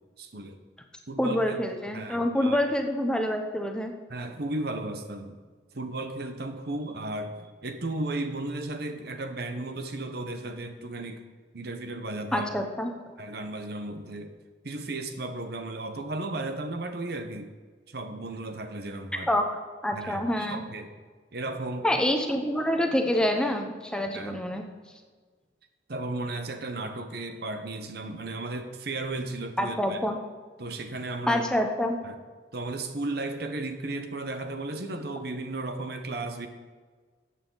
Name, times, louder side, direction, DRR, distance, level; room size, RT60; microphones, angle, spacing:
voice 1, 0.2-0.6 1.1-1.6 1.9-2.6 4.1-5.4 5.7-11.2 11.5-12.5 13.2-14.3 14.6-17.5 17.9-19.3 19.9-20.9 21.3-21.9 24.1-24.4 25.9-30.0 30.6-31.4 32.0-32.2 32.5-36.5, right 2 dB, 60° right, 7 dB, 1.0 m, -34 dB
voice 2, 1.2-3.9 12.3-12.9 19.3-20.6 21.8-24.7 29.6-30.2 31.3-32.0, left 1 dB, 5° left, 4 dB, 0.8 m, -27 dB
13.0 x 8.5 x 3.9 m, 1.5 s
head